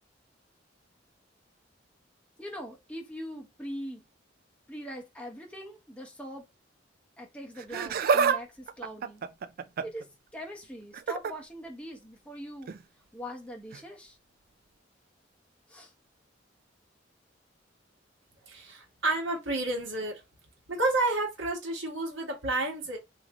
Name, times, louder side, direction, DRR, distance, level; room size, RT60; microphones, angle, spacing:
voice 1, 2.4-4.0 4.7-6.4 7.2-9.2 9.8-10.1 10.3-12.7 13.1-14.2 15.7-15.9, equal, 5° left, 0.9 m, -41 dB
Laughter, 7.6-8.4 8.7-10.0 10.9-11.3 12.6-12.8 13.7-13.8, right 6 dB, 50° right, 0.4 m, -27 dB
voice 2, 18.5-20.2 20.7-23.0, right 2 dB, 85° right, 1.4 m, -30 dB
3.1 x 2.7 x 3.5 m
head